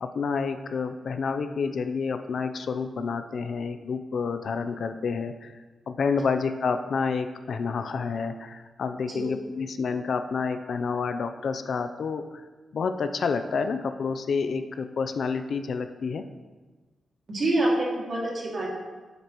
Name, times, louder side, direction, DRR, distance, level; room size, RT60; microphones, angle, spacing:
voice 1, 0.0-5.5 5.9-12.4 12.7-16.2, left 5 dB, 60° left, 9 dB, 0.5 m, -29 dB
voice 2, 17.3-18.7, right 1 dB, 40° right, -3 dB, 2.3 m, -26 dB
9.7 x 8.0 x 3.0 m, 1.3 s
wide cardioid pair, 140°, 0 cm